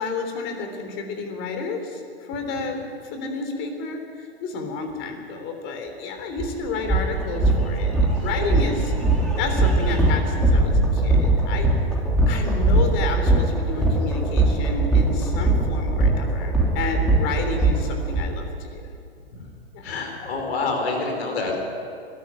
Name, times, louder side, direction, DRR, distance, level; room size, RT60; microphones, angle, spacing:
voice 1, 0.0-2.0 2.3-4.0 4.4-8.9 9.4-11.7 12.3-18.9 19.7-19.8, left 4 dB, 40° left, 5 dB, 3.6 m, -31 dB
sound 1, 6.4-6.5 6.8-18.2, right 2 dB, ahead, 3.4 m, -20 dB
voice 2, 19.8-21.6, left 3 dB, 70° left, 2 dB, 4.8 m, -27 dB
20.5 x 13.5 x 9.5 m, 2.4 s
hypercardioid pair, 120°, 32 cm